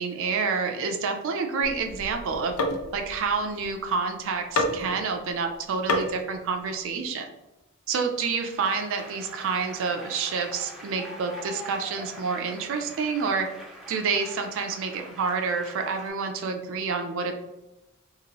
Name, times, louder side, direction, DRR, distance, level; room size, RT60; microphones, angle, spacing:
voice 1, 0.0-2.5 2.9-7.3 7.9-13.5 13.9-17.3, right 5 dB, 65° right, 4 dB, 0.4 m, -28 dB
sound 1, 1.6-4.1 4.6-5.1 5.9-6.2, left 1 dB, 85° left, 0.5 m, -29 dB
Applause, 8.2-16.1, right 1 dB, ahead, 0.6 m, -44 dB
2.8 x 2.6 x 2.9 m, 1.0 s
head